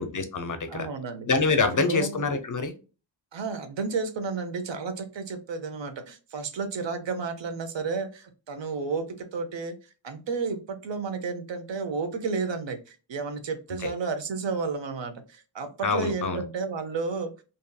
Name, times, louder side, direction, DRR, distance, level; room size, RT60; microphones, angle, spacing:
voice 1, 0.0-0.9 1.3-2.7 13.8-13.9 15.8-16.4, left 4 dB, 45° left, 8 dB, 0.5 m, -26 dB
voice 2, 0.7-1.3 1.7-2.2 3.3-17.3, right 4 dB, 65° right, 8 dB, 0.7 m, -32 dB
2.7 x 2.6 x 2.2 m, 0.33 s
wide cardioid pair, 115°, 47 cm